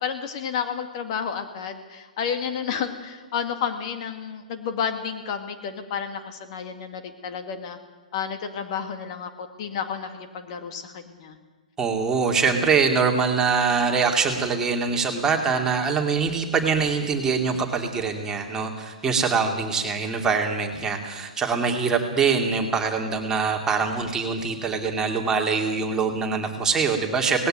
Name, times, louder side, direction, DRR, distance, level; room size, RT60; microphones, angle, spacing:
voice 1, 0.0-7.8 8.1-11.4, left 7 dB, 45° left, 7 dB, 2.1 m, -31 dB
voice 2, 11.8-27.5, right 5 dB, 15° right, 2 dB, 2.6 m, -23 dB
18.5 x 16.5 x 9.2 m, 1.3 s
figure-of-eight pair, 120°, 4 cm